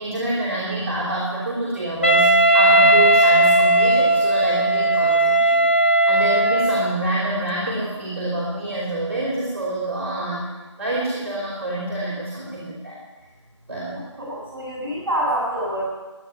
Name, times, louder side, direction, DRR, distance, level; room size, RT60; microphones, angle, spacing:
voice 1, 0.0-10.5 10.8-13.0 13.7-14.0, right 2 dB, 30° right, -7 dB, 3.6 m, -27 dB
Wind instrument woodwind instrument, 2.0-7.0, right 1 dB, 25° left, 0.6 m, -16 dB
voice 2, 14.2-15.8, right 1 dB, 5° right, -16 dB, 6.9 m, -26 dB
13.5 x 9.8 x 9.4 m, 1.2 s
figure-of-eight pair, 170°, 16 cm